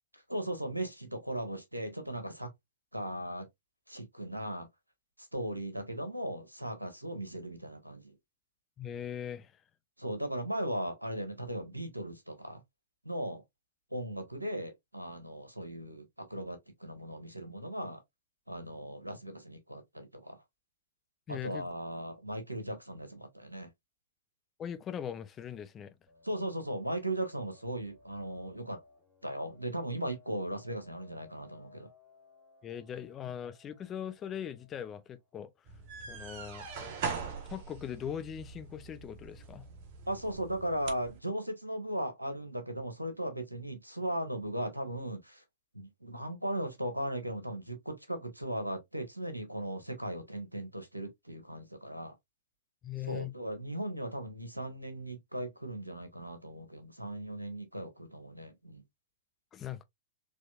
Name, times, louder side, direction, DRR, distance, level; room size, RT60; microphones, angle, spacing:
voice 1, 0.1-2.5 2.9-3.5 3.9-4.7 5.3-8.1 10.0-12.6 13.0-13.4 13.9-18.0 18.5-20.4 21.3-23.7 26.2-28.8 29.2-31.9 40.1-45.4 45.7-52.1 53.0-58.8, right 1 dB, 85° right, 1.2 m, -37 dB
voice 2, 8.8-9.5 21.3-21.7 24.6-26.0 32.6-35.5 36.1-36.7 37.5-39.6 52.8-53.3 59.5-59.8, left 9 dB, 20° left, 0.5 m, -40 dB
sound 1, 26.1-35.3, left 4 dB, 5° right, 1.9 m, -62 dB
sound 2, 35.7-41.2, right 5 dB, 40° right, 1.0 m, -42 dB
4.1 x 3.1 x 2.4 m
figure-of-eight pair, 105°, 0 cm